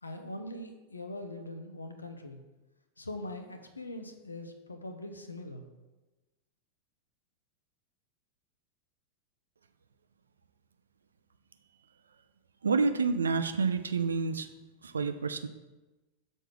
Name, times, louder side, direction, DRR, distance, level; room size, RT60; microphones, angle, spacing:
voice 1, 0.0-2.4 3.0-5.7, left 1 dB, 80° left, 7 dB, 0.7 m, -42 dB
voice 2, 12.6-14.5 14.8-15.5, right 4 dB, 70° right, 10 dB, 0.4 m, -28 dB
6.3 x 4.4 x 4.9 m, 1.2 s
figure-of-eight pair, 90°, 0 cm